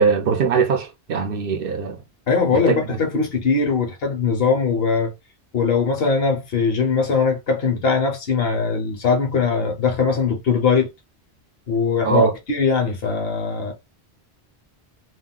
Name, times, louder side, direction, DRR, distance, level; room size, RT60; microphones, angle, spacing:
voice 1, 0.0-2.0 2.5-2.8 12.0-12.3, right 5 dB, 65° right, 0.7 m, -20 dB
voice 2, 2.3-5.1 5.5-10.9 11.7-13.7, left 5 dB, 65° left, 1.1 m, -21 dB
3.6 x 2.3 x 2.2 m
omnidirectional pair, 1.1 m